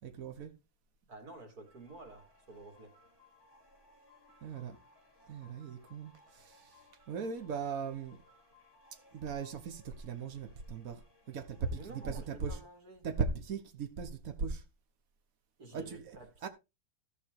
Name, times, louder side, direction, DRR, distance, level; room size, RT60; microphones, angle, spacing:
voice 1, 0.0-0.5 4.4-4.8 5.3-8.2 8.9-12.6 13.0-14.6 15.7-16.2 16.4-16.5, right 5 dB, 70° right, 1.7 m, -39 dB
voice 2, 1.1-3.0 11.8-13.1 15.6-16.5, right 2 dB, 90° right, 3.2 m, -51 dB
sound 1, 1.6-12.3, left 2 dB, 15° left, 5.0 m, -64 dB
14.0 x 5.4 x 4.8 m
omnidirectional pair, 1.6 m